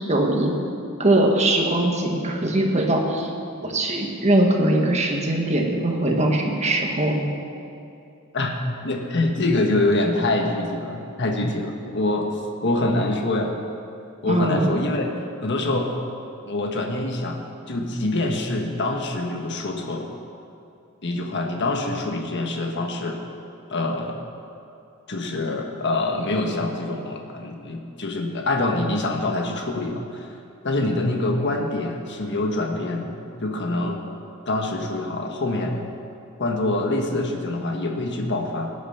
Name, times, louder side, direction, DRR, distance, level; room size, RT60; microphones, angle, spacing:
voice 1, 0.1-0.5 1.0-3.3 3.6-7.3 14.3-14.7, right 1 dB, 30° right, 1 dB, 1.7 m, -21 dB
voice 2, 8.8-13.5 14.2-15.1 15.4-16.0 16.4-17.4 17.7-20.1 21.0-23.2 23.7-24.2 25.1-30.3 30.6-34.0 34.4-35.8 36.4-38.7, left 2 dB, 55° left, 2 dB, 1.4 m, -25 dB
18.0 x 10.0 x 5.7 m, 2.6 s
head